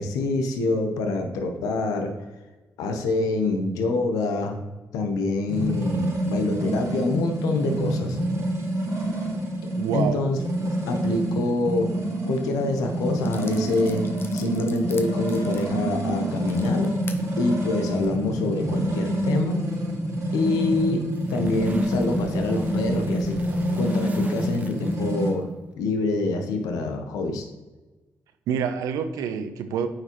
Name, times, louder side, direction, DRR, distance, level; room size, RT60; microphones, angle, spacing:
voice 1, 0.0-2.1 2.8-4.6 4.9-8.2 9.9-10.4 10.8-11.9 12.3-14.0 14.3-16.9 17.4-19.6 20.3-21.0 21.3-23.4 23.8-25.5 25.8-27.4, left 3 dB, 90° left, 5 dB, 0.8 m, -26 dB
sound 1, 5.5-25.3, right 1 dB, 60° right, 2.0 m, -27 dB
voice 2, 9.8-10.2 28.5-29.9, right 7 dB, 85° right, 9 dB, 0.6 m, -27 dB
sound 2, 12.8-12.9 13.2-17.2 17.8-18.1, left 4 dB, 40° left, 0.9 m, -44 dB
sound 3, 21.1-25.3, right 2 dB, 25° right, 0.7 m, -41 dB
8.6 x 4.8 x 3.0 m, 1.2 s
supercardioid pair, 55°, 6 cm